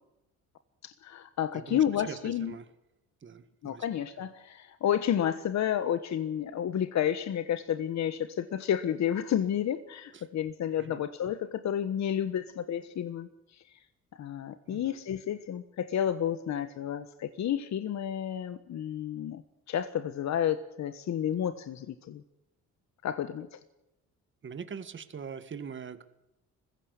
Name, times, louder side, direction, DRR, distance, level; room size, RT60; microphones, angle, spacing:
voice 1, 0.8-2.5 3.6-13.3 14.2-19.4 19.7-22.2 23.0-23.6, left 10 dB, 65° left, 11 dB, 1.4 m, -31 dB
voice 2, 1.5-2.7 3.2-3.9 10.1-10.3 10.8-11.0 14.7-15.0 24.4-26.0, right 6 dB, 40° right, 11 dB, 1.8 m, -42 dB
21.0 x 16.0 x 8.3 m, 0.91 s
cardioid pair, 90°, 30 cm